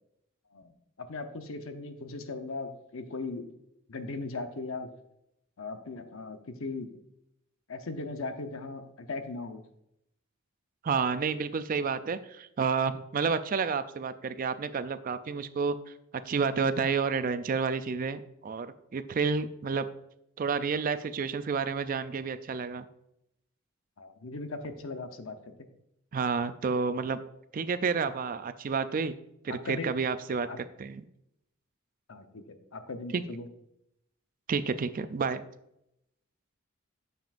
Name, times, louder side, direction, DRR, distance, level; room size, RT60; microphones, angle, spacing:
voice 1, 1.0-3.5 3.9-4.9 5.6-6.9 7.7-9.6 19.6-19.8 24.0-25.5 28.0-28.1 29.5-29.9 30.5-30.6 32.1-33.4, left 3 dB, 75° left, 7 dB, 0.8 m, -38 dB
voice 2, 10.8-15.8 16.3-19.9 20.4-22.9 26.1-27.2 27.5-29.1 29.4-30.5 30.8-31.0 33.1-33.2 34.5-35.4, right 5 dB, 40° right, 12 dB, 0.4 m, -30 dB
9.3 x 6.8 x 2.5 m, 0.81 s
head